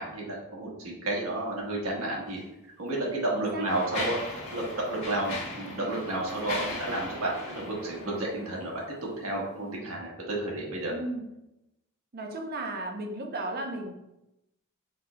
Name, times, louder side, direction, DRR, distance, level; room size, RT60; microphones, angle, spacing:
voice 1, 0.0-2.4 2.8-4.2 4.5-8.8 9.2-10.9, right 2 dB, 80° right, -2 dB, 1.2 m, -31 dB
Mechanisms, 2.3-2.4 3.2-8.9, left 2 dB, 90° left, 1.3 m, -39 dB
voice 2, 3.3-3.7 10.9-11.3 12.1-14.0, right 2 dB, 50° right, 2 dB, 0.6 m, -35 dB
5.3 x 3.8 x 2.2 m, 0.90 s
head